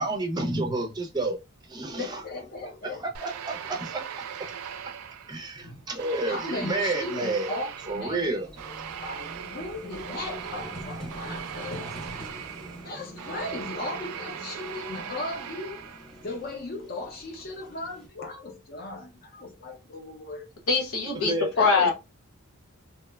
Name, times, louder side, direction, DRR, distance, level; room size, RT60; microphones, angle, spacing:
voice 1, 0.0-1.4 1.7-2.2 3.0-4.2 5.3-7.5 7.9-8.5 21.2-21.5, right 2 dB, 20° right, 0.5 m, -30 dB
voice 2, 2.0-3.3 6.3-8.4 8.6-8.7 9.0-11.9 12.8-15.8 16.2-20.5 21.5-21.9, left 2 dB, 45° left, 0.6 m, -37 dB
Vehicle, 2.2-2.4 4.4-4.5 4.7-18.1, equal, 5° left, 0.9 m, -45 dB
sound 1, 3.1-5.6 6.0-16.3, right 8 dB, 85° right, 0.3 m, -39 dB
voice 3, 20.7-21.9, left 4 dB, 80° left, 0.9 m, -23 dB
2.8 x 2.1 x 2.2 m
head